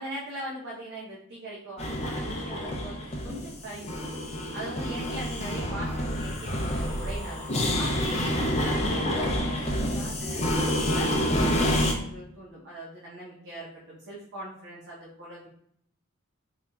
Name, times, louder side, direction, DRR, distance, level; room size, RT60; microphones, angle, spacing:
voice 1, 0.0-7.5 7.8-10.4 10.8-15.5, right 1 dB, 55° right, -6 dB, 0.9 m, -40 dB
sound 1, 1.8-11.9, equal, 30° left, 0.5 m, -28 dB
4.1 x 3.5 x 2.3 m, 0.68 s
head